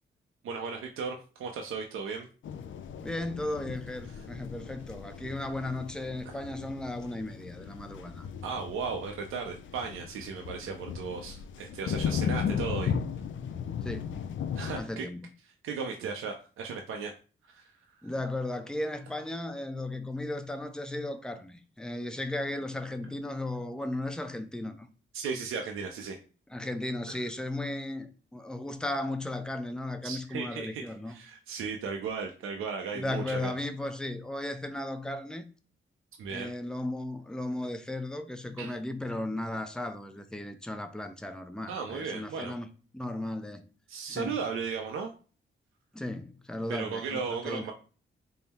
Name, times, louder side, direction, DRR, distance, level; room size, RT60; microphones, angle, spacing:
voice 1, 0.4-2.3 6.3-6.4 8.4-12.9 14.6-15.1 15.6-17.1 17.4-18.1 25.1-26.2 27.1-27.2 30.0-33.5 36.2-36.5 38.6-38.7 41.7-42.5 43.9-45.1 46.7-47.7, right 5 dB, 85° right, 0.5 m, -36 dB
sound 1, 2.4-14.8, left 7 dB, 65° left, 0.4 m, -36 dB
voice 2, 3.0-8.3 13.8-14.1 14.8-15.2 18.0-24.9 26.5-31.1 32.9-35.4 36.3-43.7 44.1-44.4 45.9-47.7, left 1 dB, 5° left, 0.5 m, -36 dB
3.6 x 2.0 x 4.1 m
cardioid pair, 60°, 21 cm